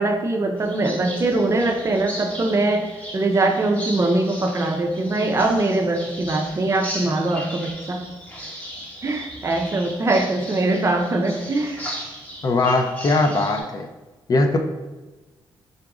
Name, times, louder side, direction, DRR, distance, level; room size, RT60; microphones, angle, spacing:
voice 1, 0.0-8.0 9.0-11.8, right 2 dB, 35° right, 3 dB, 0.5 m, -22 dB
sound 1, 0.6-13.6, equal, 20° left, 1.0 m, -37 dB
voice 2, 12.4-13.9 14.3-14.6, left 2 dB, 45° left, 4 dB, 0.5 m, -20 dB
3.9 x 2.4 x 4.7 m, 1.1 s
cardioid pair, 115°, 9 cm